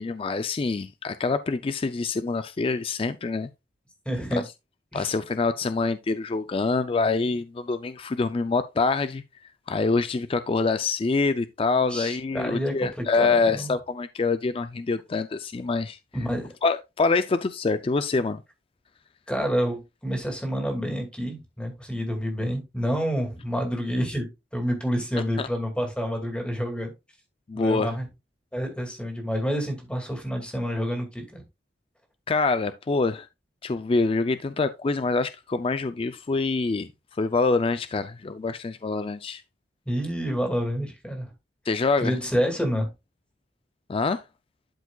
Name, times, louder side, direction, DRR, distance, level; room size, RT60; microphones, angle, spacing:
voice 1, 0.0-3.5 4.3-4.4 4.9-9.2 9.7-16.0 16.6-18.4 25.4-25.5 27.5-28.0 32.3-33.3 33.6-36.9 37.2-39.4 41.7-42.1 43.9-44.2, left 4 dB, 30° left, 0.4 m, -25 dB
voice 2, 4.1-4.4 4.9-5.1 11.9-13.8 16.1-16.5 19.3-26.9 27.5-28.1 28.5-31.4 39.9-41.3 42.0-42.9, equal, 5° left, 2.1 m, -28 dB
11.5 x 4.9 x 2.3 m
head